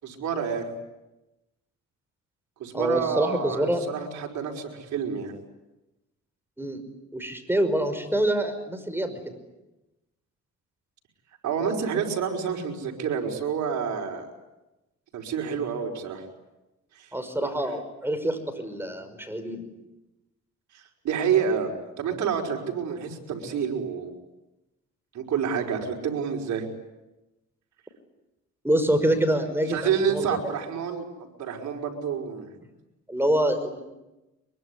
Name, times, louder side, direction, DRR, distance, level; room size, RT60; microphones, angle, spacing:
voice 1, 0.0-0.7 2.6-5.3 11.4-14.3 15.1-16.2 17.0-17.1 17.4-17.5 20.7-24.1 25.1-26.7 29.7-32.5, right 7 dB, 70° right, 1 dB, 5.4 m, -28 dB
voice 2, 2.7-3.8 6.6-6.8 7.1-9.2 15.4-15.6 17.1-19.6 28.6-30.4 33.1-33.8, right 1 dB, 5° right, 8 dB, 5.4 m, -26 dB
24.0 x 23.0 x 9.9 m, 1.0 s
cardioid pair, 90°, 30 cm